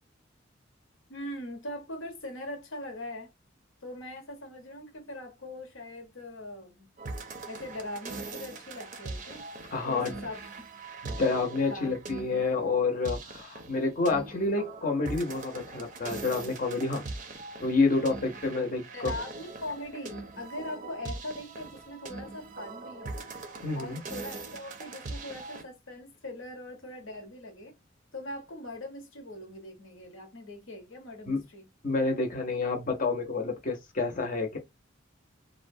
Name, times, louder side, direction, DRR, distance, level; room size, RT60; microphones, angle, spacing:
voice 1, 1.1-3.3 3.8-6.9 7.4-9.5 9.8-10.4 11.7-11.9 18.9-23.3 23.7-27.7 28.1-31.7, left 1 dB, 80° left, 1.0 m, -41 dB
sound 1, 7.0-25.6, right 3 dB, 40° right, 0.5 m, -41 dB
voice 2, 9.7-10.1 11.0-17.0 17.6-19.1 23.6-24.0 31.3-31.4 31.8-34.6, left 3 dB, 40° left, 0.7 m, -28 dB
2.4 x 2.1 x 2.6 m
head